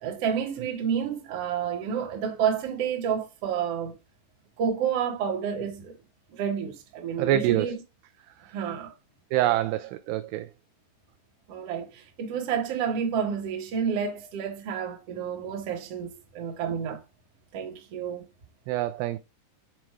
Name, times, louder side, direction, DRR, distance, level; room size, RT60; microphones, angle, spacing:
voice 1, 0.0-4.0 4.6-5.9 6.3-7.7 8.5-8.9 11.5-17.0 17.5-18.2, right 7 dB, 60° right, 1.6 m, -30 dB
voice 2, 7.2-7.8 9.3-10.5 18.7-19.2, right 14 dB, 85° right, 2.4 m, -25 dB
7.4 x 4.6 x 4.8 m
omnidirectional pair, 5.2 m